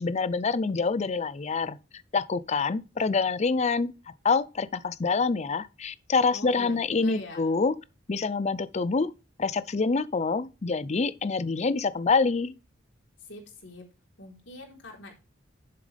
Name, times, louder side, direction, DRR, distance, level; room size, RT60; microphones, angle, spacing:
voice 1, 0.0-1.8 2.1-3.9 4.2-7.7 8.1-9.1 9.4-12.5, left 4 dB, 35° left, 0.5 m, -26 dB
voice 2, 6.3-7.5 13.2-13.8 14.2-15.1, left 1 dB, 65° left, 3.9 m, -43 dB
9.8 x 7.6 x 3.4 m
head